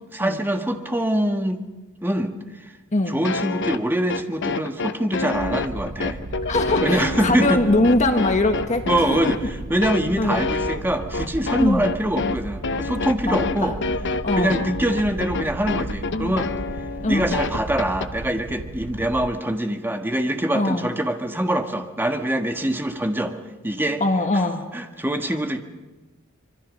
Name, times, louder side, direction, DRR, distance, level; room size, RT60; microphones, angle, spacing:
voice 1, 0.1-1.6 2.0-2.3 2.6-2.7 3.1-6.2 6.8-7.6 8.9-13.8 14.3-16.5 17.1-23.3 23.6-24.0 24.3-24.4 24.7-25.6, right 1 dB, 10° right, 5 dB, 1.5 m, -24 dB
sound 1, 3.2-18.1, left 3 dB, 55° left, 0.9 m, -27 dB
sound 2, 5.3-19.3, right 2 dB, 65° right, 1.0 m, -35 dB
voice 2, 6.4-9.2 10.2-10.4 11.6-11.9 13.2-13.7 14.2-14.6 17.0-17.4 20.5-20.9 24.0-24.6, left 2 dB, 35° left, 6 dB, 1.4 m, -22 dB
25.5 x 23.5 x 6.5 m, 1.2 s
head